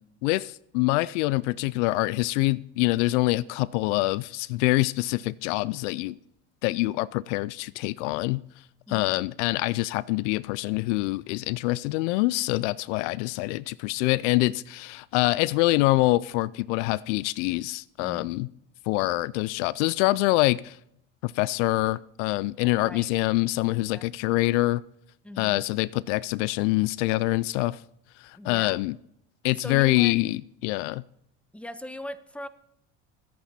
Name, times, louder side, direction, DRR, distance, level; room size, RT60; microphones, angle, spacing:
voice 1, 0.2-6.2 6.6-8.4 8.9-18.5 18.9-20.8 21.2-24.8 25.4-27.8 28.2-29.0 29.4-31.0, left 20 dB, 70° left, 0.5 m, -25 dB
voice 2, 8.9-9.2 18.0-18.3 22.8-23.1 23.7-24.0 25.2-25.6 28.3-28.8 29.6-30.2 31.5-32.5, left 1 dB, 5° left, 1.0 m, -40 dB
25.0 x 8.5 x 4.2 m
hypercardioid pair, 70°, 37 cm